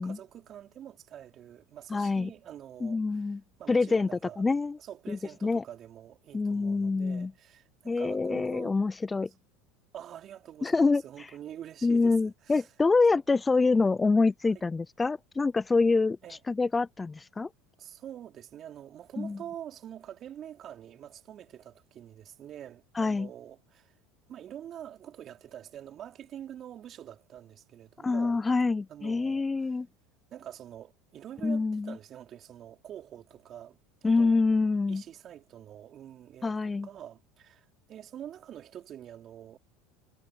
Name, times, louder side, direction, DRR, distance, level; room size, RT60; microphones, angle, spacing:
voice 1, 0.0-4.4 4.8-8.8 9.3-9.4 9.9-12.7 14.5-14.6 16.2-16.4 17.8-24.0 24.3-28.4 28.9-29.7 30.3-34.4 34.9-39.6, right 10 dB, 45° right, 3.9 m, -46 dB
voice 2, 1.9-2.3 2.8-3.4 3.7-4.8 5.1-5.6 6.3-7.3 7.9-9.3 10.6-11.0 11.8-16.2 16.5-17.5 19.2-19.4 23.0-23.3 28.0-29.9 31.4-32.0 34.0-35.0 36.4-36.9, left 3 dB, 20° left, 0.3 m, -26 dB
hypercardioid pair, 90°, 0 cm